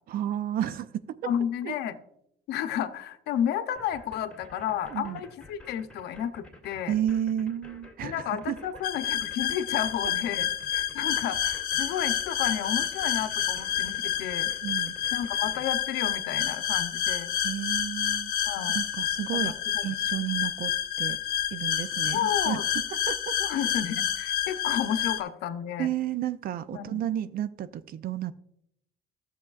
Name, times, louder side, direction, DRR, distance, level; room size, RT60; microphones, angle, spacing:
voice 1, 0.1-1.2 1.6-1.7 4.9-5.2 6.9-8.2 8.5-8.6 14.6-14.9 17.4-18.3 18.7-19.5 19.8-20.7 21.0-21.2 21.5-22.6 23.1-23.3 25.8-28.3, right 11 dB, 60° right, 0.5 m, -31 dB
voice 2, 1.2-2.0 2.5-6.9 8.0-14.5 15.1-17.3 18.4-18.8 19.3-19.8 22.1-22.7 23.4-25.9 26.7-27.0, left 9 dB, 80° left, 0.7 m, -32 dB
sound 1, 3.8-15.6, left 2 dB, 5° left, 2.2 m, -50 dB
sound 2, 8.8-25.2, left 10 dB, 55° left, 0.9 m, -29 dB
13.0 x 7.0 x 2.4 m
cardioid pair, 110°, 17 cm